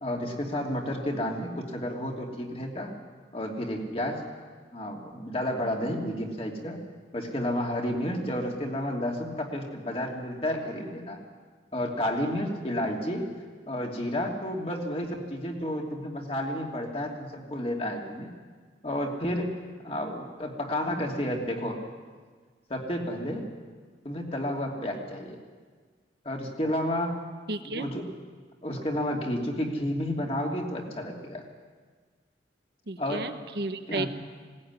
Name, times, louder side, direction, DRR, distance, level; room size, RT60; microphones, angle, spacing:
voice 1, 0.0-2.9 3.3-4.2 4.7-6.8 7.1-11.2 11.7-13.3 13.7-18.3 18.8-19.6 19.8-21.8 22.7-23.4 24.0-25.4 26.2-27.2 27.6-28.1 28.6-31.4 33.0-33.2 33.9-34.1, left 1 dB, 35° left, 0 dB, 2.8 m, -31 dB
voice 2, 27.5-27.9 32.9-34.1, right 2 dB, 60° right, 8 dB, 1.2 m, -33 dB
20.0 x 18.0 x 9.7 m, 1.5 s
head